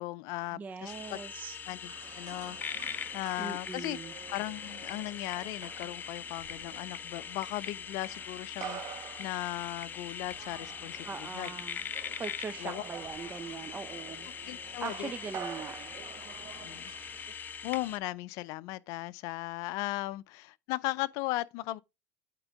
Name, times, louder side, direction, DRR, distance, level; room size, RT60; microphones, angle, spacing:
voice 1, 0.0-1.2 1.7-1.8 2.1-4.0 4.3-11.5 12.6-12.8 14.5-15.1 16.6-16.9 17.3-21.8, left 18 dB, 60° left, 0.5 m, -37 dB
voice 2, 0.5-1.5 3.4-4.1 11.0-11.8 12.2-14.3 14.8-15.8, right 5 dB, 25° right, 0.7 m, -41 dB
sound 1, 0.9-18.0, left 7 dB, 30° left, 0.8 m, -42 dB
sound 2, 1.8-17.3, right 9 dB, 50° right, 1.1 m, -48 dB
8.7 x 3.6 x 4.8 m
supercardioid pair, 100°, 6 cm